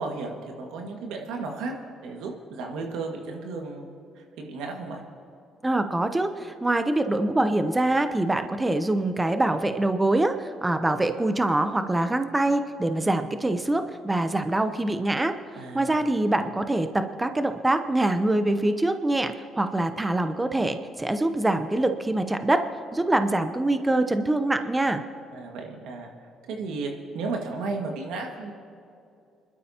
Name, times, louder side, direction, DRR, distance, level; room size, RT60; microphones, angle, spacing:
voice 1, 0.0-5.0 13.0-13.1 15.6-15.9 25.3-26.1 26.5-28.5, right 3 dB, 80° right, 2 dB, 1.9 m, -34 dB
voice 2, 5.6-22.6 22.9-25.0, right 2 dB, 15° right, 8 dB, 0.8 m, -24 dB
25.5 x 12.0 x 2.9 m, 2.6 s
supercardioid pair, 70°, 0 cm